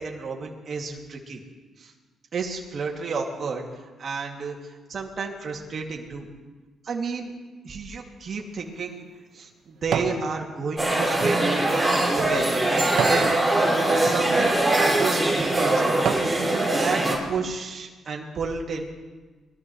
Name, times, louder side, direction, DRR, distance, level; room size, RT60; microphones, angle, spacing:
voice 1, 0.0-1.4 1.8-1.9 2.3-3.7 4.0-6.3 6.8-7.3 7.6-9.0 9.3-11.4 12.2-13.6 14.0-15.9 16.5-17.0 17.3-18.8, right 4 dB, 50° right, 0 dB, 2.5 m, -31 dB
sound 1, 8.4-10.2 10.7-13.3 13.9-14.2 14.9-15.0 15.5-16.4 16.9-17.0, right 7 dB, 70° right, 1.3 m, -32 dB
sound 2, 10.8-17.1, right 2 dB, 5° right, 5.2 m, -22 dB
23.0 x 13.5 x 3.2 m, 1.3 s
cardioid pair, 90°, 0 cm